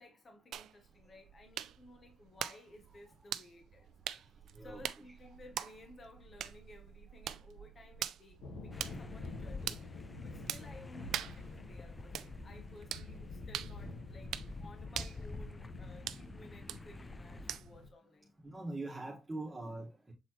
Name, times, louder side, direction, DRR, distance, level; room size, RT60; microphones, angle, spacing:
voice 1, 0.0-3.9 4.6-18.4, left 1 dB, 45° left, 1.9 m, -57 dB
sound 1, 0.5-17.9, right 11 dB, 85° right, 0.4 m, -45 dB
sound 2, 8.4-17.9, left 2 dB, 75° left, 1.6 m, -49 dB
sound 3, 8.7-17.6, left 3 dB, 20° left, 0.3 m, -48 dB
voice 2, 18.4-20.1, right 2 dB, 20° right, 1.6 m, -43 dB
7.1 x 4.3 x 3.0 m
cardioid pair, 100°, 0 cm